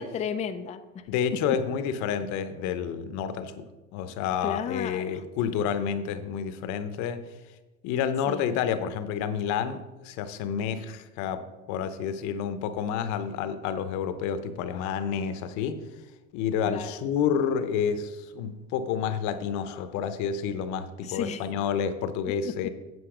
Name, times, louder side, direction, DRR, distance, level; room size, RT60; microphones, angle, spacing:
voice 1, 0.0-1.0 1.5-1.6 4.4-5.2 8.3-8.4 16.7-16.9 21.0-21.5 22.4-22.7, left 7 dB, 20° left, 7 dB, 0.5 m, -33 dB
voice 2, 1.1-7.2 7.8-15.8 16.3-22.7, left 7 dB, 65° left, 11 dB, 0.9 m, -29 dB
7.9 x 7.8 x 5.0 m, 1.1 s
cardioid pair, 125°, 30 cm